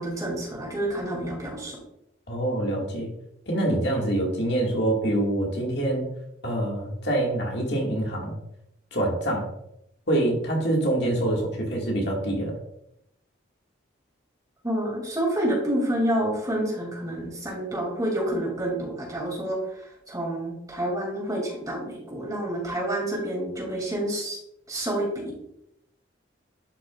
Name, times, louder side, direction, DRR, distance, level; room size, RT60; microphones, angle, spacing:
voice 1, 0.0-1.8 14.6-24.4 24.7-25.1, right 1 dB, 20° right, -3 dB, 2.8 m, -28 dB
voice 2, 2.3-3.1 3.5-6.1 6.4-8.3 8.9-9.5 10.1-12.6, right 1 dB, 60° left, -2 dB, 2.0 m, -25 dB
11.5 x 6.1 x 2.4 m, 0.78 s
head